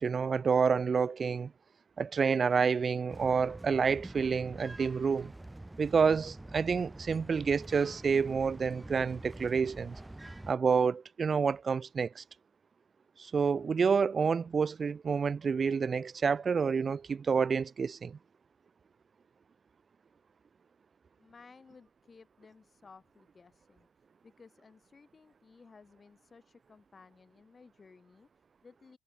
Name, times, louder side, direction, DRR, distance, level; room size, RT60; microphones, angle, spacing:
voice 1, 0.0-1.5 2.0-5.3 5.8-10.0 10.5-12.2 13.2-18.2, right 5 dB, 30° right, 0.7 m, -28 dB
sound 1, 3.1-10.5, right 1 dB, 10° right, 5.7 m, -46 dB
voice 2, 21.2-29.0, left 4 dB, 25° left, 7.4 m, -58 dB
cardioid pair, 115°, 0 cm